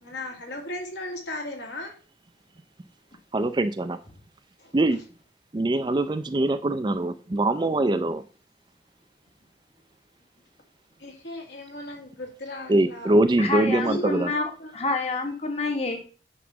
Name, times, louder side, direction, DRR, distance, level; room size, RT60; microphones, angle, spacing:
voice 1, 0.0-2.0 4.6-4.7 11.0-13.1 13.8-14.7, left 1 dB, 75° left, 1 dB, 2.3 m, -36 dB
voice 2, 3.3-4.0 4.7-5.0 5.5-8.2 12.7-14.3, right 2 dB, 25° right, 11 dB, 0.4 m, -23 dB
voice 3, 13.4-14.5 14.7-16.1, left 3 dB, 35° left, 3 dB, 1.1 m, -28 dB
9.3 x 3.1 x 6.0 m, 0.38 s
head